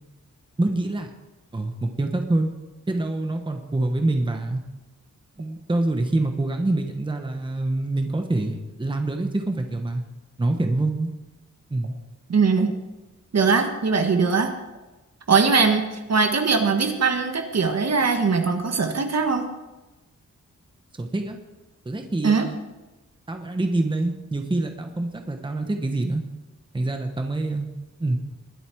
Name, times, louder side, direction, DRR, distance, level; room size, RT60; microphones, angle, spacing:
voice 1, 0.6-1.1 1.5-2.5 2.9-4.6 5.4-10.0 10.4-11.1 11.7-12.0 21.0-21.4 21.8-22.6 23.3-26.2 26.7-27.7 28.0-28.2, right 2 dB, 15° right, 4 dB, 1.0 m, -25 dB
voice 2, 12.3-12.7 13.3-14.5 15.3-19.5 22.2-22.5, right 5 dB, 60° right, 5 dB, 1.5 m, -21 dB
21.0 x 8.1 x 4.6 m, 1.1 s
wide cardioid pair, 155°, 30 cm